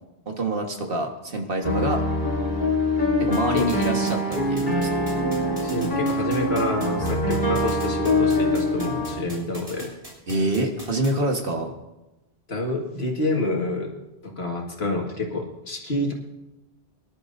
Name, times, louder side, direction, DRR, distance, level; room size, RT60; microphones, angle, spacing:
voice 1, 0.3-2.0 3.2-4.9 10.3-11.7, right 1 dB, 60° right, 3 dB, 1.8 m, -26 dB
sound 1, 1.6-9.2, left 1 dB, 50° left, 3.3 m, -24 dB
sound 2, 3.3-11.1, right 1 dB, 35° right, 3.6 m, -39 dB
voice 2, 5.6-9.9 12.5-13.9 14.2-16.1, left 2 dB, 75° left, 0 dB, 2.2 m, -28 dB
24.0 x 11.5 x 2.7 m, 1.0 s
omnidirectional pair, 1.1 m